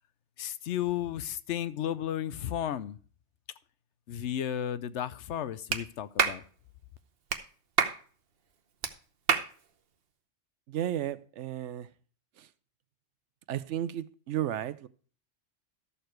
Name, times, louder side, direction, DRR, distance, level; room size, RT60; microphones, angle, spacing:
voice 1, 0.4-3.0 4.1-6.4, left 10 dB, 75° left, 0.9 m, -33 dB
Clapping, 5.7-5.8 6.2-6.4 7.3-7.4 7.8-8.0 8.8-8.9 9.3-9.5, right 6 dB, 55° right, 1.0 m, -26 dB
voice 2, 10.7-11.9 12.4-12.5 13.5-14.9, right 11 dB, 80° right, 0.9 m, -33 dB
12.5 x 6.7 x 4.5 m
omnidirectional pair, 1.2 m